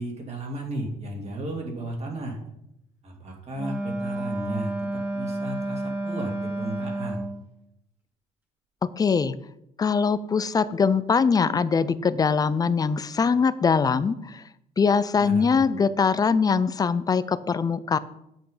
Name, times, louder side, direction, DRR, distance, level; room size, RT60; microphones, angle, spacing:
voice 1, 0.0-2.4 3.0-7.2 15.1-15.6, right 1 dB, 40° right, 0 dB, 2.3 m, -34 dB
Wind instrument woodwind instrument, 3.6-7.4, right 1 dB, 10° right, 1.9 m, -30 dB
voice 2, 8.8-9.3 9.8-14.4 14.8-18.0, left 5 dB, 20° left, 15 dB, 0.4 m, -22 dB
8.2 x 5.8 x 5.0 m, 0.81 s
cardioid pair, 110°, 17 cm